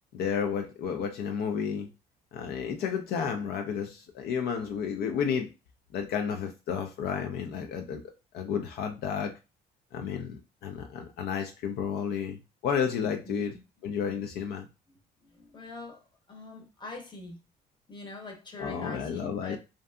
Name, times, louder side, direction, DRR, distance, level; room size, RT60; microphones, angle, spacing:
voice 1, 0.1-1.9 2.3-5.5 5.9-8.0 8.3-9.4 9.9-13.6 13.8-14.7 18.6-19.6, left 7 dB, 70° left, 0.4 m, -32 dB
voice 2, 13.3-13.6 15.3-16.0 16.3-17.4 17.9-19.6, left 3 dB, 25° left, 0.8 m, -43 dB
2.6 x 2.5 x 2.2 m
cardioid pair, 110°, 17 cm